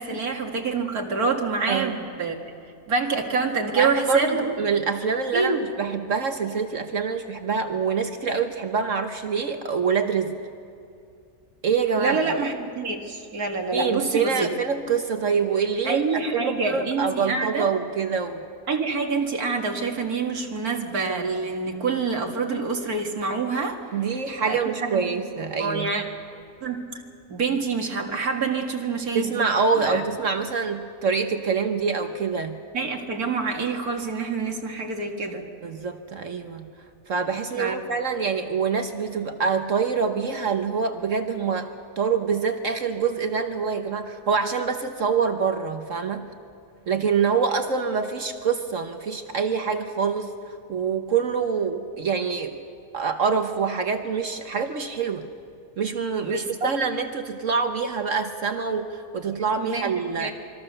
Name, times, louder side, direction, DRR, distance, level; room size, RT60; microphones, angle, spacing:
voice 1, 0.0-2.4 2.9-4.5 5.3-5.6 12.0-14.5 15.8-17.7 18.7-23.8 24.5-25.0 25.6-26.0 26.6-26.9 27.3-29.5 29.8-30.0 32.7-35.4 37.6-37.8 56.2-56.7 59.6-59.9 60.2-60.3, right 4 dB, 75° right, 2 dB, 2.5 m, -26 dB
voice 2, 3.7-10.4 11.6-12.2 13.7-18.4 23.9-26.1 29.1-32.6 35.6-36.7 37.1-41.7 42.0-46.3 46.9-52.6 52.9-55.3 55.8-60.3, right 5 dB, 60° right, 7 dB, 1.3 m, -25 dB
25.5 x 23.5 x 6.8 m, 2.5 s
omnidirectional pair, 1.6 m